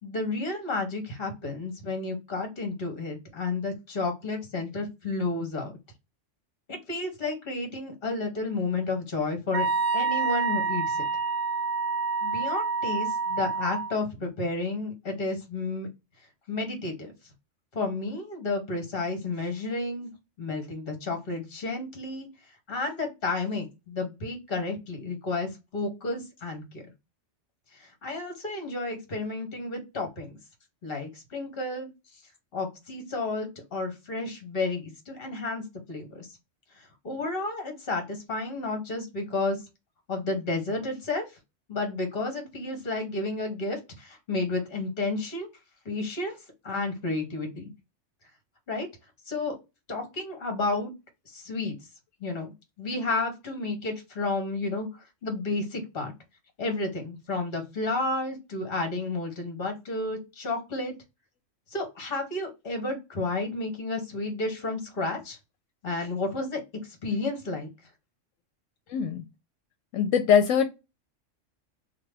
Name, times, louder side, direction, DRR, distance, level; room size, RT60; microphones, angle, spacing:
voice 1, 0.0-5.7 6.7-9.7 9.9-11.1 12.2-15.9 16.5-17.1 17.7-20.1 20.4-22.3 22.7-26.8 27.8-30.3 30.8-31.9 32.5-36.3 37.0-39.6 40.1-41.3 41.7-45.5 45.8-46.4 46.6-47.7 48.7-48.9 49.3-49.6 49.9-50.9 51.3-51.8 52.2-52.5 52.8-54.9 55.2-56.1 56.6-60.9 61.7-65.4 65.8-66.6 67.0-67.7, left 3 dB, 50° left, 4 dB, 1.4 m, -31 dB
Wind instrument woodwind instrument, 9.5-13.9, right 4 dB, 65° right, 0.8 m, -27 dB
voice 2, 68.9-69.2 69.9-70.7, left 7 dB, 85° left, 7 dB, 1.0 m, -22 dB
2.9 x 2.2 x 3.3 m, 0.23 s
omnidirectional pair, 1.3 m